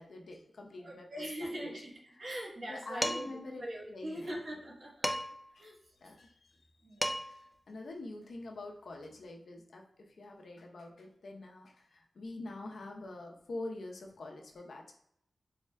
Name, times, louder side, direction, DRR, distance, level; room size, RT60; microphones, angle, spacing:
voice 1, 0.0-1.8 2.7-4.4 5.5-5.7 6.0-6.6 7.2-14.9, left 2 dB, 80° left, 1 dB, 0.7 m, -46 dB
voice 2, 0.8-3.3 3.6-5.1 5.6-6.1 6.8-7.2, equal, 50° right, -2 dB, 1.1 m, -42 dB
Dishes pots and pans, 3.0-3.4 5.0-5.5 6.7-6.8 7.0-7.5, equal, ahead, 0.5 m, -34 dB
4.7 x 3.4 x 2.2 m, 0.73 s
wide cardioid pair, 110°, 0 cm